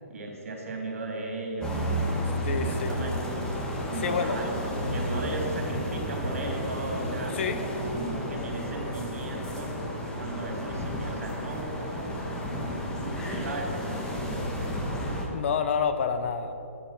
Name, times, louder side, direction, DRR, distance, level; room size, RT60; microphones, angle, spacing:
voice 1, 0.1-1.9 2.5-3.5 3.9-7.4 7.9-9.8 10.2-12.2 12.8-14.8, right 2 dB, 70° right, 1 dB, 3.0 m, -36 dB
Downtown Vancouver BC Canada, 1.6-15.3, equal, 10° left, 1.4 m, -32 dB
voice 2, 2.4-3.0 4.0-4.4 7.3-7.6 15.3-16.5, left 6 dB, 55° left, 9 dB, 1.0 m, -28 dB
9.7 x 8.6 x 7.5 m, 2.9 s
hypercardioid pair, 155°, 8 cm